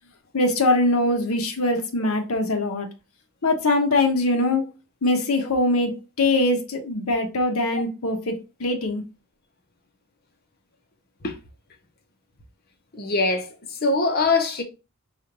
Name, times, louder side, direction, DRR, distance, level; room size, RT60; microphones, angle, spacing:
voice 1, 0.3-2.9 3.4-4.6 5.0-9.0, left 2 dB, 85° left, 0.8 m, -22 dB
voice 2, 12.9-13.5 13.8-14.6, left 3 dB, 45° left, 0.8 m, -22 dB
5.1 x 2.5 x 2.9 m
head